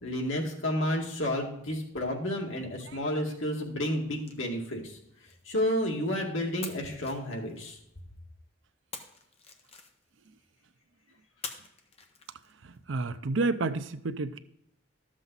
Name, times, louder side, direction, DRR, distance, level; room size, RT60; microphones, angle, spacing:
voice 1, 0.0-5.0 5.5-7.8, left 1 dB, 85° left, 0 dB, 2.2 m, -31 dB
sound 1, 3.8-6.1 6.6-8.2 8.9-10.3 11.4-12.8, left 5 dB, 30° left, 1.1 m, -47 dB
voice 2, 12.6-14.4, right 3 dB, 75° right, 11 dB, 0.6 m, -30 dB
12.5 x 7.5 x 4.0 m, 0.79 s
head